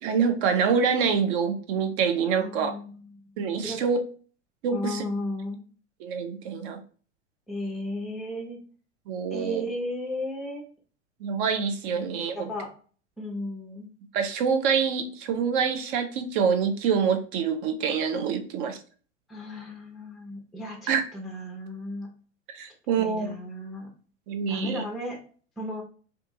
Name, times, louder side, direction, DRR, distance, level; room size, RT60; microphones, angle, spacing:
voice 1, 0.0-2.7 3.4-4.0 4.6-5.0 6.0-6.8 9.1-9.6 11.2-12.5 14.1-18.8 20.9-21.0 22.5-23.3 24.3-24.8, right 6 dB, 45° right, 7 dB, 0.6 m, -26 dB
voice 2, 2.4-3.0 3.4-3.8 4.7-5.6 7.5-8.6 9.3-10.6 12.3-12.7 13.2-13.9 19.3-22.1 23.0-23.9 24.5-25.2 25.6-25.8, left 1 dB, ahead, 0 dB, 0.5 m, -34 dB
2.5 x 2.4 x 2.6 m, 0.40 s
figure-of-eight pair, 90°, 37 cm